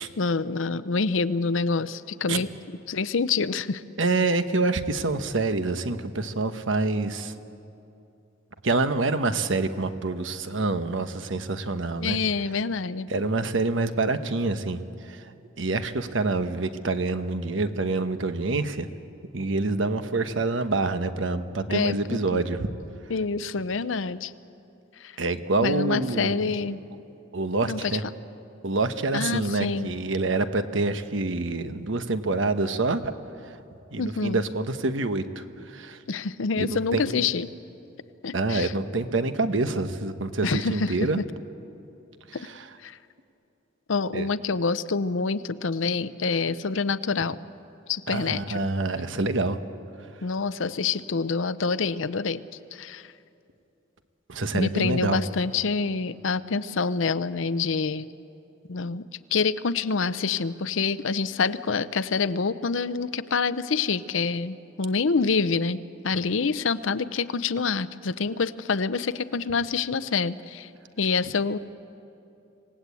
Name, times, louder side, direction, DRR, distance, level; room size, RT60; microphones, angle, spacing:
voice 1, 0.0-2.5 2.9-3.8 12.0-13.1 21.7-22.4 23.1-24.3 25.0-25.1 25.6-26.8 27.6-28.0 29.1-29.9 34.0-34.5 36.1-37.5 38.2-38.7 40.4-41.1 42.3-42.5 42.8-43.0 43.9-47.4 47.9-48.7 50.2-52.4 52.7-53.1 54.5-58.1 58.7-59.0 59.3-70.7 71.0-71.6, left 4 dB, 75° left, 15 dB, 0.7 m, -27 dB
voice 2, 4.0-7.3 8.6-12.2 13.1-14.8 15.1-15.2 15.6-18.9 19.3-22.7 25.2-26.4 27.3-28.0 28.6-33.1 33.9-35.2 35.7-36.0 36.6-37.2 38.3-41.2 44.1-44.3 48.1-49.6 54.3-55.2, right 3 dB, 70° right, 10 dB, 1.1 m, -26 dB
26.5 x 18.0 x 8.4 m, 2.8 s
head